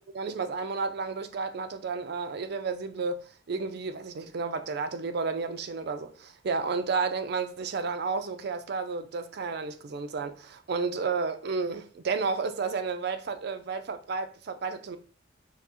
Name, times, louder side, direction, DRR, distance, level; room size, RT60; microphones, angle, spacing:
voice 1, 0.1-15.0, right 4 dB, 55° right, 0.4 m, -32 dB
5.5 x 2.1 x 2.9 m
head